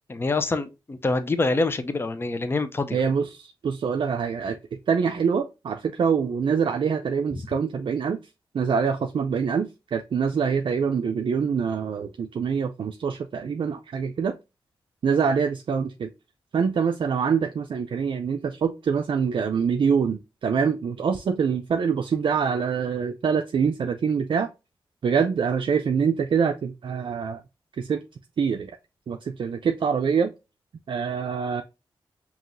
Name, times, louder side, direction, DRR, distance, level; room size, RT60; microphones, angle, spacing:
voice 1, 0.1-3.0, left 3 dB, 25° left, 0.5 m, -26 dB
voice 2, 2.9-4.6 4.9-8.2 8.5-14.3 15.0-16.1 16.5-24.5 25.0-27.4 27.8-28.0 28.4-28.7 29.1-30.3 30.9-31.6, right 6 dB, 65° right, 0.4 m, -25 dB
5.6 x 2.9 x 2.5 m
wide cardioid pair, 110°, 9 cm